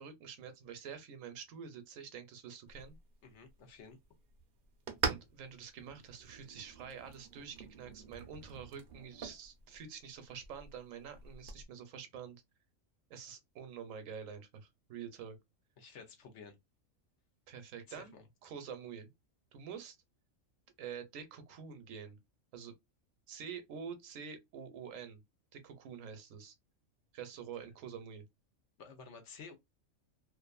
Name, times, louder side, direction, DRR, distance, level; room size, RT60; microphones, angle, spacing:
voice 1, 0.0-3.0 5.0-12.4 13.1-14.5 14.9-15.4 17.5-18.1 18.4-19.1 19.5-20.0 20.8-22.2 22.5-22.7 23.3-25.2 25.5-26.5 27.1-28.2, right 7 dB, 75° right, 1.0 m, -47 dB
sound 1, 2.7-11.6, right 5 dB, 55° right, 0.6 m, -44 dB
voice 2, 3.2-4.0 15.8-16.5 17.9-18.2 28.8-29.5, left 5 dB, 65° left, 0.9 m, -52 dB
2.6 x 2.4 x 2.2 m
omnidirectional pair, 1.4 m